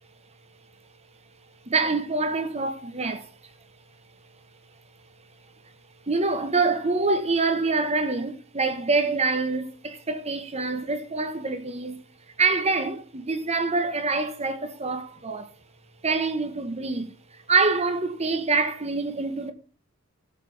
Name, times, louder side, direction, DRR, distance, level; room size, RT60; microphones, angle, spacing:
voice 1, 1.6-3.5 6.0-12.0 12.4-15.5 16.0-19.5, right 3 dB, 30° right, 1.2 m, -26 dB
17.5 x 7.4 x 3.4 m
head